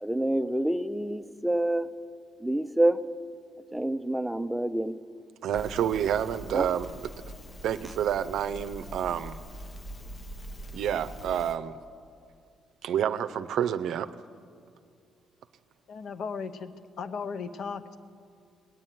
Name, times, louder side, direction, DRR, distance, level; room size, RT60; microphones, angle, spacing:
voice 1, 0.0-1.9 2.4-3.0 3.7-5.0 6.5-6.7, right 1 dB, 5° right, 11 dB, 0.5 m, -27 dB
voice 2, 5.4-7.1 7.6-9.4 10.7-11.8 12.8-14.1, right 9 dB, 75° right, 11 dB, 0.5 m, -29 dB
Crackle, 5.5-11.6, right 1 dB, 40° left, 1.1 m, -43 dB
voice 3, 15.9-17.8, left 5 dB, 70° left, 11 dB, 0.7 m, -36 dB
19.0 x 7.4 x 9.3 m, 2.3 s
cardioid pair, 90°, 0 cm